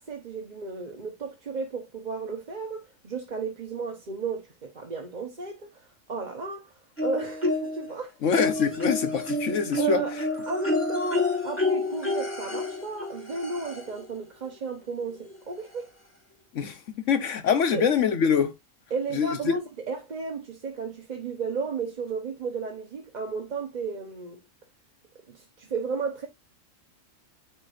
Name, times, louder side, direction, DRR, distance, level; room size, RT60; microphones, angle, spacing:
voice 1, 0.0-6.7 7.0-8.1 9.4-10.1 10.5-15.9 17.7-17.9 18.9-24.4 25.3-26.3, right 4 dB, 35° right, 1.1 m, -33 dB
sound 1, 7.0-7.9 8.4-14.0 15.3-15.4 15.7-15.8, left 2 dB, 10° left, 2.9 m, -29 dB
voice 2, 8.2-10.0 16.5-16.8 17.1-18.5 19.1-19.6, left 6 dB, 70° left, 1.2 m, -24 dB
9.7 x 4.6 x 2.5 m
omnidirectional pair, 1.4 m